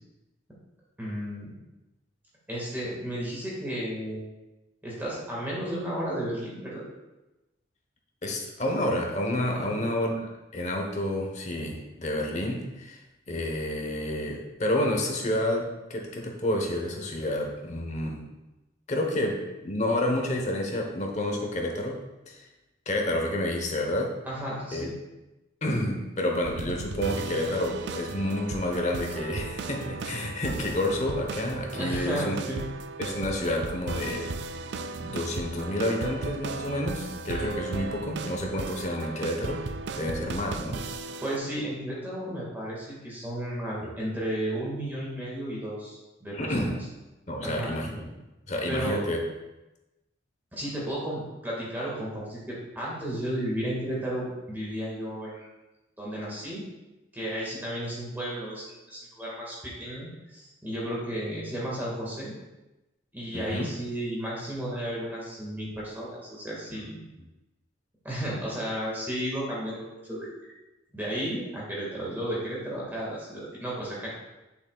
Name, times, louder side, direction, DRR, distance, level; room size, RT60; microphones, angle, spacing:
voice 1, 1.0-1.5 2.5-4.2 4.8-6.8 9.5-9.9 24.2-24.9 31.7-32.6 41.2-46.8 47.4-47.7 48.7-49.0 50.5-55.5 56.0-56.6 57.1-62.3 63.1-67.0 68.0-70.3 70.9-74.1, right 1 dB, 10° right, -6 dB, 1.8 m, -33 dB
voice 2, 8.2-13.0 13.3-18.2 18.9-22.0 22.3-22.4 22.9-24.2 24.7-24.9 25.6-32.3 33.0-34.3 35.0-39.7 39.9-40.9 46.3-46.8 47.3-48.1 48.5-49.2 63.3-63.7 66.7-66.8, left 1 dB, 40° left, 1 dB, 1.1 m, -29 dB
sound 1, 26.4-41.4, right 4 dB, 60° right, 0.4 m, -36 dB
8.2 x 6.9 x 2.4 m, 1.0 s
head